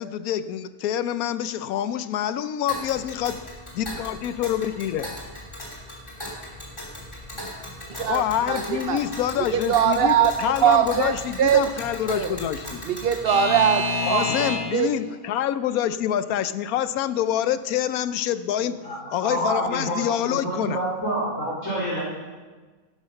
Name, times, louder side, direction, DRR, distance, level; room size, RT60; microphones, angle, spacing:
voice 1, 0.0-5.1 8.0-12.8 14.0-18.8 19.1-20.8, left 10 dB, 85° left, 13 dB, 1.1 m, -26 dB
Alarm / Clock, 2.7-14.8, left 1 dB, 20° left, 3.0 m, -33 dB
voice 2, 7.9-9.0 9.5-10.3 10.6-11.7 12.1-12.3 12.8-14.9, right 8 dB, 65° right, 8 dB, 0.6 m, -22 dB
voice 3, 18.6-19.0 19.2-22.0, right 1 dB, 60° left, -8 dB, 3.8 m, -28 dB
12.0 x 11.5 x 5.4 m, 1.3 s
omnidirectional pair, 1.5 m